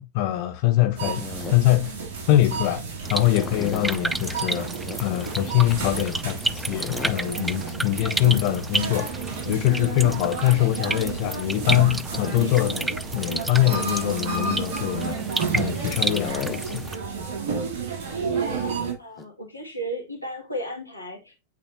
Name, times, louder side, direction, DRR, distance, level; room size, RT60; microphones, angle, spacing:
voice 1, 0.0-2.0 2.3-4.7 5.0-9.1 9.5-15.2 15.5-16.9, left 15 dB, 45° left, 0.5 m, -23 dB
sound 1, 0.9-18.9, right 5 dB, 50° right, 2.4 m, -31 dB
sound 2, 1.0-1.7 3.3-4.0 4.7-6.3 6.6-8.6 10.9-11.0 12.1-12.8 16.0-16.6 17.9-18.1 19.2-19.3, left 6 dB, 20° left, 0.9 m, -37 dB
sound 3, 3.0-17.0, right 2 dB, 5° right, 0.3 m, -32 dB
voice 2, 19.0-21.4, right 1 dB, 85° left, 2.0 m, -34 dB
8.3 x 4.2 x 2.7 m
figure-of-eight pair, 90°, 0 cm